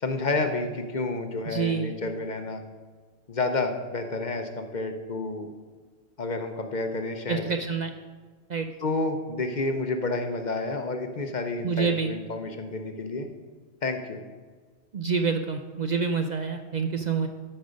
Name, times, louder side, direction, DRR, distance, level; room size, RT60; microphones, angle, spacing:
voice 1, 0.0-2.6 3.3-5.5 6.2-7.5 8.8-13.3 13.8-14.2, left 3 dB, 45° left, 6 dB, 0.8 m, -30 dB
voice 2, 1.5-1.9 7.3-7.9 8.5-8.7 11.6-12.1 14.9-17.3, right 5 dB, 50° right, 6 dB, 0.6 m, -27 dB
13.5 x 5.4 x 5.2 m, 1.4 s
omnidirectional pair, 1.1 m